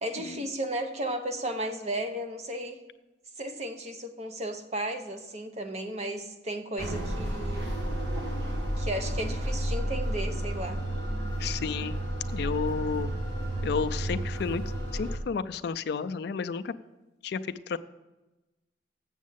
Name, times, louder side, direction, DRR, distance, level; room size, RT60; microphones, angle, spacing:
voice 1, 0.0-2.8 3.4-7.7 8.8-10.8, right 1 dB, 35° right, 6 dB, 0.8 m, -34 dB
sound 1, 6.8-15.2, right 1 dB, 60° right, 1.6 m, -31 dB
voice 2, 11.4-12.0 12.3-13.1 13.6-14.6 14.9-16.7 17.2-17.8, left 5 dB, 60° left, 11 dB, 0.3 m, -31 dB
7.3 x 7.3 x 7.3 m, 1.1 s
head